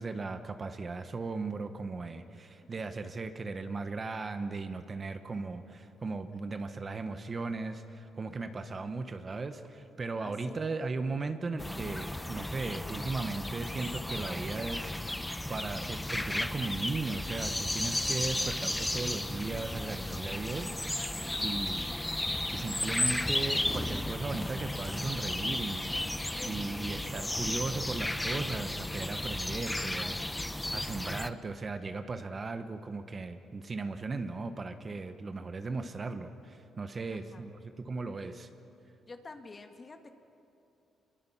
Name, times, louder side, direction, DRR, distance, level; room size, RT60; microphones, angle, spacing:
voice 1, 0.0-14.9 15.5-21.1 21.4-21.9 22.5-26.0 26.4-30.4 30.7-38.5, right 3 dB, 35° right, 8 dB, 1.2 m, -37 dB
voice 2, 8.5-8.8 10.2-10.6 37.1-37.5 39.1-40.2, left 3 dB, 30° left, 5 dB, 1.9 m, -50 dB
sound 1, 11.6-31.3, left 1 dB, 10° left, 0.7 m, -34 dB
26.0 x 22.5 x 5.8 m, 2.8 s
cardioid pair, 90°, 0 cm